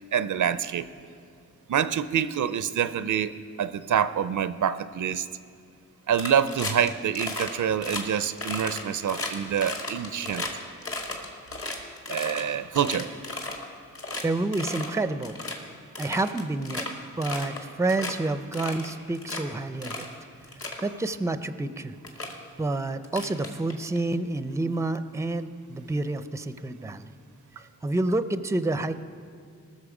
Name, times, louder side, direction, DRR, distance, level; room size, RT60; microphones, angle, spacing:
voice 1, 0.1-0.9 1.7-3.3 3.6-5.3 6.1-10.4 12.1-13.1, right 8 dB, 75° right, 14 dB, 0.5 m, -26 dB
sound 1, 6.1-6.9 7.1-7.5 7.8-8.0 8.4-10.5 10.8-12.4 12.7-13.6 13.9-14.2 14.5-14.9 15.2-15.5 15.9-16.9 17.2-17.6 17.9-18.1 18.5-19.4 19.8-20.1 20.4-20.8 21.6-21.7 22.0-22.3 23.0-24.0, left 2 dB, 45° left, 1.8 m, -34 dB
voice 2, 14.2-15.4 16.0-16.9 17.2-20.1 20.8-22.0 22.6-27.1 27.6-29.0, right 2 dB, 10° right, 12 dB, 0.5 m, -29 dB
19.0 x 6.5 x 4.9 m, 2.3 s
wide cardioid pair, 70°, 31 cm